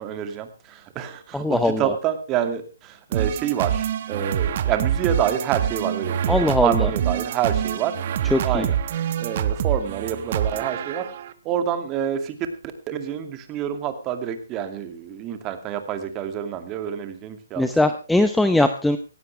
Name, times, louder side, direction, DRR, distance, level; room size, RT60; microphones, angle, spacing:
voice 1, 0.0-7.9 8.4-11.0 11.4-12.4 12.9-17.7, right 9 dB, 20° right, 8 dB, 2.3 m, -27 dB
voice 2, 1.3-1.9 6.3-6.9 8.3-8.7 17.6-19.0, left 1 dB, ahead, 9 dB, 0.8 m, -20 dB
sound 1, 3.1-11.3, right 9 dB, 45° right, 1.2 m, -25 dB
17.5 x 16.5 x 3.3 m, 0.32 s
hypercardioid pair, 155°, 0 cm